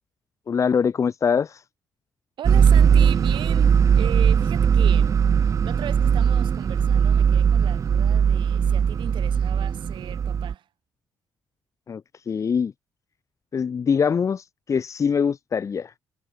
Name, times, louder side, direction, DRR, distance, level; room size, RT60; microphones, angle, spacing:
voice 1, 0.5-1.6 11.9-12.7 13.5-15.9, left 6 dB, 40° left, 0.5 m, -23 dB
sound 1, 2.4-10.5, right 7 dB, 40° right, 0.3 m, -19 dB
voice 2, 2.4-10.7, right 11 dB, 75° right, 3.0 m, -37 dB
cardioid pair, 95°, 8 cm